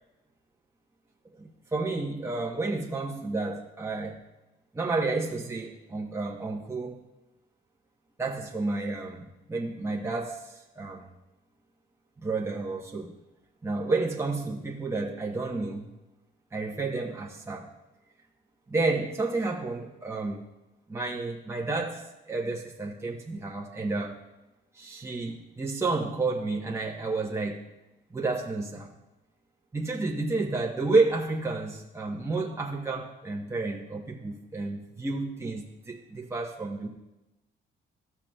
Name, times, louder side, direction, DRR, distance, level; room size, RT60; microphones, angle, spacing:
voice 1, 1.4-4.2 4.7-7.0 8.2-11.1 12.2-13.1 13.6-15.9 16.5-17.7 18.7-20.4 20.9-24.2 24.7-27.6 28.1-28.9 29.7-36.9, right 3 dB, 15° right, -1 dB, 1.0 m, -31 dB
14.0 x 5.8 x 2.3 m, 0.99 s
cardioid pair, 90°, 20 cm